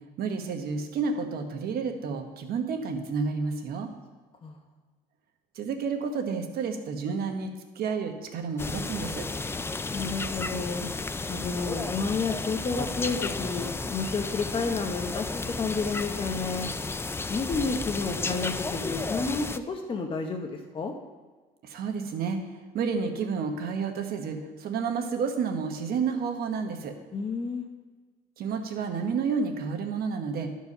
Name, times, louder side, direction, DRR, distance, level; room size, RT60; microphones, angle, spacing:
voice 1, 0.2-3.9 5.5-9.3 21.6-22.4 22.7-27.0 28.4-30.5, right 5 dB, 65° right, 5 dB, 1.2 m, -30 dB
sound 1, 8.6-19.6, left 3 dB, 15° left, 0.4 m, -33 dB
voice 2, 9.9-10.9 11.3-16.7 17.3-20.9 27.1-27.7, left 4 dB, 30° left, 3 dB, 0.9 m, -31 dB
12.0 x 4.6 x 5.5 m, 1.4 s
cardioid pair, 110°, 17 cm